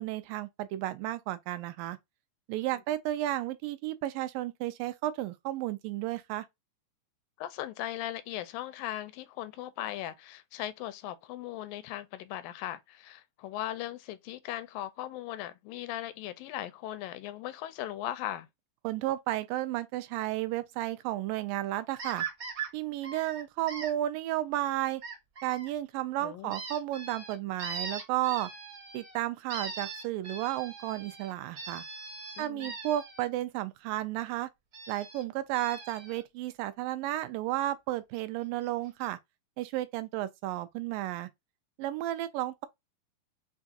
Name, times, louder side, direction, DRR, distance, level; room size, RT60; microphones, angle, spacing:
voice 1, 0.0-2.0 2.5-6.5 18.8-22.3 22.7-25.0 25.4-28.5 28.9-31.8 32.4-34.5 34.9-39.2 39.6-41.3 41.8-42.7, right 14 dB, 85° right, 2.3 m, -33 dB
voice 2, 7.4-18.5 26.2-26.5 32.4-32.7, left 13 dB, 85° left, 2.3 m, -38 dB
sound 1, 22.0-22.7 23.0-23.9 25.0-25.7 26.5-29.1 29.5-33.3 34.7-35.2 35.5-36.2 38.2-38.3 38.6-38.7 39.0-39.1, right 5 dB, 55° right, 0.9 m, -41 dB
6.0 x 2.4 x 2.7 m
omnidirectional pair, 3.9 m